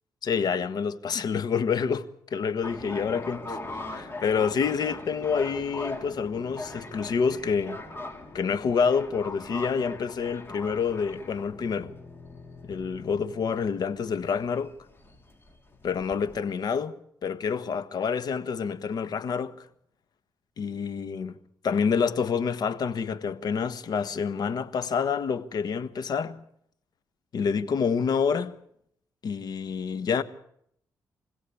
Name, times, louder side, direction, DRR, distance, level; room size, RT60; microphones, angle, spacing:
voice 1, 0.2-7.8 8.3-11.9 12.7-14.7 15.8-19.7 20.6-21.3 21.6-26.4 27.3-28.5 29.2-30.2, left 6 dB, 60° left, 1.5 m, -28 dB
sound 1, 2.6-16.4, left 2 dB, 30° left, 3.8 m, -41 dB
25.0 x 16.5 x 8.6 m
cardioid pair, 75°, 8 cm